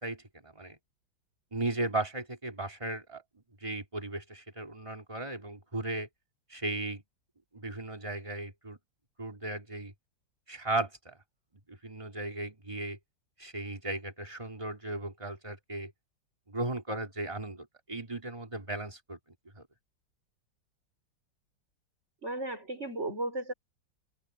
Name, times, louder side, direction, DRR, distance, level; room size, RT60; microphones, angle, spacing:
voice 1, 0.0-0.8 1.5-3.2 3.6-6.1 6.5-7.0 7.5-8.8 9.2-9.9 10.5-11.2 11.7-13.0 13.4-15.9 16.5-19.2 19.6-19.7, right 2 dB, 15° right, 3.3 m, -36 dB
voice 2, 22.2-23.5, right 1 dB, 35° right, 6.2 m, -35 dB
omnidirectional pair, 2.0 m